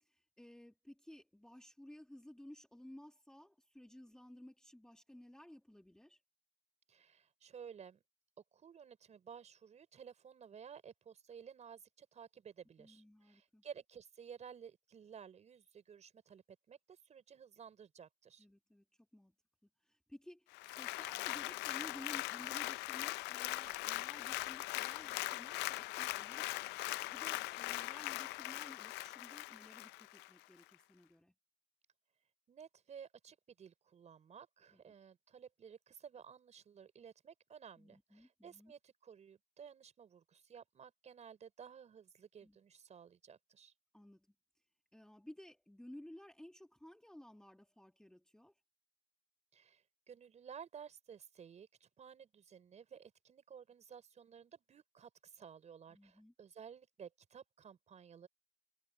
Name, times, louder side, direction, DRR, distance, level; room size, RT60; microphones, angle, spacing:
voice 1, 0.0-6.2 12.8-13.6 18.4-18.8 19.1-19.3 19.8-26.6 27.1-31.3 34.7-34.9 37.8-38.7 42.4-42.6 43.9-44.3 44.9-48.5 55.9-56.3, left 1 dB, 5° left, 1.6 m, -56 dB
voice 2, 6.9-8.0 8.5-18.5 32.5-43.7 49.5-58.3, right 7 dB, 40° right, 5.2 m, -55 dB
Applause, 20.5-30.3 30.7-30.8, left 19 dB, 90° left, 0.5 m, -41 dB
cardioid pair, 110°, 17 cm